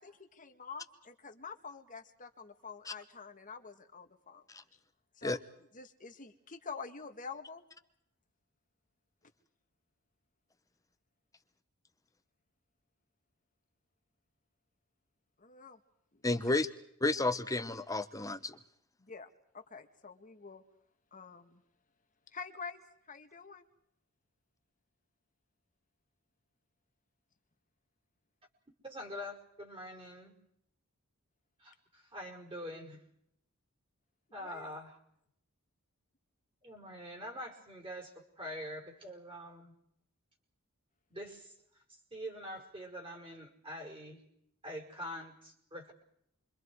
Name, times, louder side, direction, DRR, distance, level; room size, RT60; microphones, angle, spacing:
voice 1, 0.0-4.4 5.2-5.4 5.7-7.6 15.4-15.8 16.1-16.2 19.0-19.3 19.5-20.6 21.1-21.6 22.3-22.8 23.1-23.6 34.4-34.7, left 5 dB, 35° left, 2.0 m, -47 dB
voice 2, 16.2-16.7 17.0-18.6, left 2 dB, 15° left, 1.1 m, -32 dB
voice 3, 28.8-30.4 31.6-33.0 34.3-34.9 36.6-39.7 41.1-41.5 41.9-44.2 44.6-45.9, equal, 25° right, 5.4 m, -45 dB
29.0 x 25.0 x 4.8 m
head